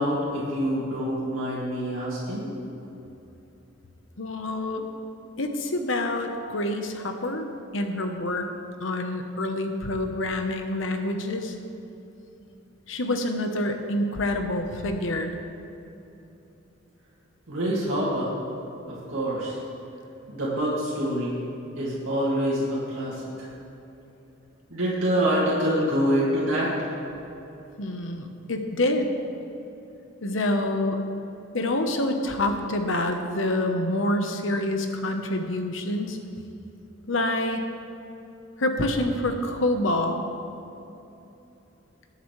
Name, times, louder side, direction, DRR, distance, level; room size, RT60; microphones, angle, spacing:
voice 1, 0.0-2.5 17.5-18.3 18.9-19.5 20.3-21.4 21.7-23.5 24.7-26.7, equal, 85° right, -7 dB, 2.4 m, -26 dB
voice 2, 4.2-4.8 5.4-7.5 7.7-8.5 8.8-11.6 12.9-15.3 27.8-29.1 30.2-31.0 31.5-36.2 37.1-37.6 38.6-40.3, left 1 dB, 65° left, 5 dB, 1.1 m, -27 dB
20.5 x 8.0 x 3.3 m, 2.9 s
head